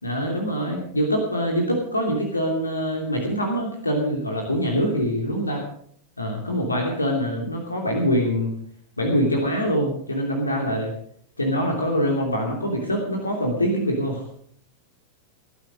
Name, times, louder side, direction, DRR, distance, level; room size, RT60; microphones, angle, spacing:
voice 1, 0.0-5.6 6.2-8.5 9.0-10.9 11.4-14.2, equal, 80° left, 1 dB, 2.9 m, -24 dB
19.5 x 10.5 x 5.2 m, 0.62 s
figure-of-eight pair, 90°, 0 cm